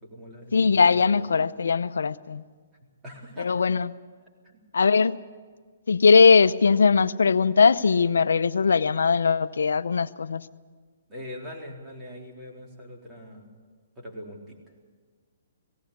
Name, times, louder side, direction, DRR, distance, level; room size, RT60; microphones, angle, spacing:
voice 1, 0.0-1.2 3.0-3.6 4.4-4.6 11.1-13.5 14.0-14.6, left 1 dB, 15° right, -2 dB, 4.0 m, -42 dB
voice 2, 0.5-2.4 3.4-3.9 4.7-5.2 5.9-10.4, left 5 dB, 80° left, 14 dB, 0.6 m, -20 dB
18.5 x 17.0 x 8.4 m, 1.6 s
hypercardioid pair, 145°, 0 cm